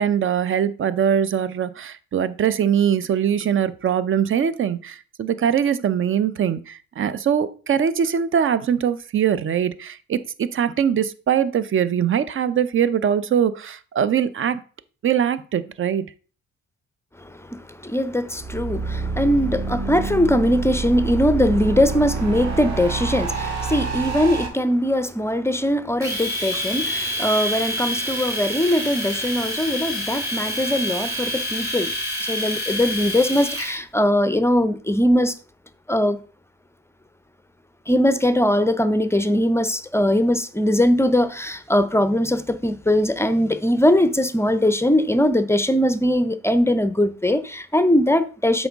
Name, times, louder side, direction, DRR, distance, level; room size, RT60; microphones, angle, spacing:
voice 1, 0.0-14.6 15.0-16.1, right 8 dB, 45° right, 0.6 m, -22 dB
voice 2, 17.2-31.9 32.2-35.4 35.9-36.2 37.9-48.7, left 1 dB, 10° left, 0.6 m, -21 dB
sound 1, 18.3-24.5, right 4 dB, 65° right, 1.9 m, -27 dB
Domestic sounds home sounds, 26.0-33.8, equal, 10° right, 2.3 m, -27 dB
7.7 x 5.0 x 3.6 m
cardioid pair, 90°, 30 cm